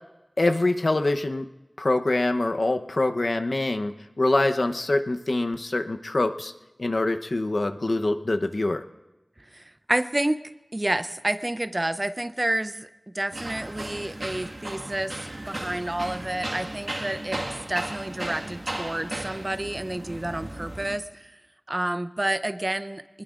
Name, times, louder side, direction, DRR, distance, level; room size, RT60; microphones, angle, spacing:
voice 1, 0.4-1.5 1.8-3.9 4.2-6.5 6.8-8.8, left 2 dB, 65° left, 6 dB, 0.8 m, -24 dB
voice 2, 9.4-10.4 10.7-12.9 13.1-17.4 17.7-21.4 21.7-23.2, right 1 dB, 35° right, 11 dB, 0.6 m, -29 dB
sound 1, 13.3-21.0, right 1 dB, 50° right, 1.7 m, -35 dB
24.0 x 20.5 x 2.5 m, 1.1 s
wide cardioid pair, 50°, 0 cm